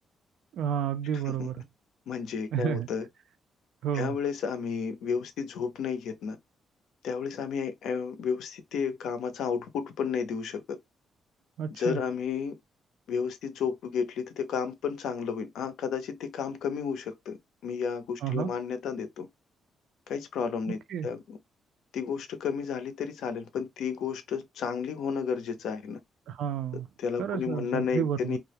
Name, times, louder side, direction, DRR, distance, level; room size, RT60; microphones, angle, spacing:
voice 1, 0.5-1.6 2.5-2.9 3.8-4.2 11.6-12.0 18.2-18.5 20.9-21.1 26.3-26.9 27.2-28.4, right 9 dB, 70° right, 0.4 m, -31 dB
voice 2, 2.1-3.0 3.9-6.4 7.0-10.6 11.8-12.5 13.1-17.4 17.6-19.3 20.1-21.4 21.9-26.0 27.0-28.4, left 6 dB, 70° left, 0.5 m, -32 dB
2.3 x 2.0 x 2.8 m
cardioid pair, 180°, 0 cm